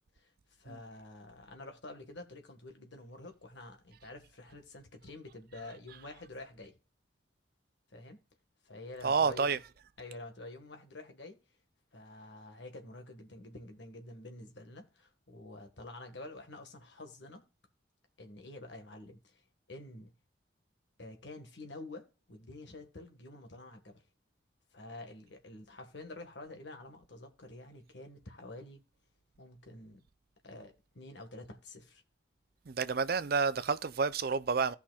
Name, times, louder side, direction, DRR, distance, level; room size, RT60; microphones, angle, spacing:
voice 1, 0.1-6.8 7.9-8.2 8.6-9.5 10.0-11.4 11.9-17.4 18.2-19.4 19.7-20.1 21.0-24.0 24.7-28.8 29.4-30.0 30.4-32.0, left 2 dB, 65° left, 1.5 m, -48 dB
voice 2, 9.0-9.6 32.7-34.7, right 5 dB, 50° right, 0.5 m, -29 dB
16.0 x 5.8 x 2.3 m
head